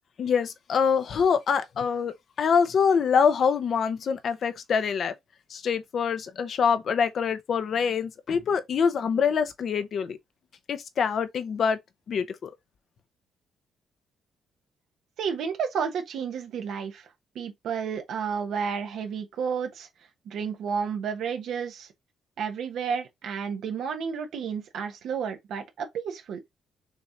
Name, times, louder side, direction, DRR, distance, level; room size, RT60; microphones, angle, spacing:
voice 1, 0.2-5.1 5.5-10.2 10.7-11.8 12.1-12.5, left 6 dB, 55° left, 0.8 m, -25 dB
voice 2, 15.2-17.0 17.3-19.9 20.3-21.9 22.4-26.4, right 6 dB, 75° right, 1.1 m, -31 dB
6.1 x 3.0 x 2.6 m
cardioid pair, 90°, 0 cm